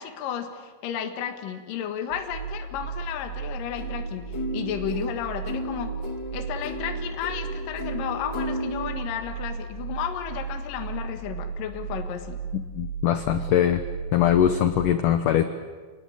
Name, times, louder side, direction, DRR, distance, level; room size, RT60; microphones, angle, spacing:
voice 1, 0.0-4.2 4.5-5.9 6.3-12.4, left 9 dB, 60° left, 5 dB, 2.9 m, -33 dB
sound 1, 2.1-14.9, right 5 dB, 80° right, 5.7 m, -35 dB
sound 2, 3.8-8.9, left 1 dB, 40° left, 1.7 m, -35 dB
voice 2, 12.7-13.8 14.1-15.4, left 10 dB, 90° left, 10 dB, 1.8 m, -21 dB
28.0 x 18.5 x 8.9 m, 1.4 s
omnidirectional pair, 5.1 m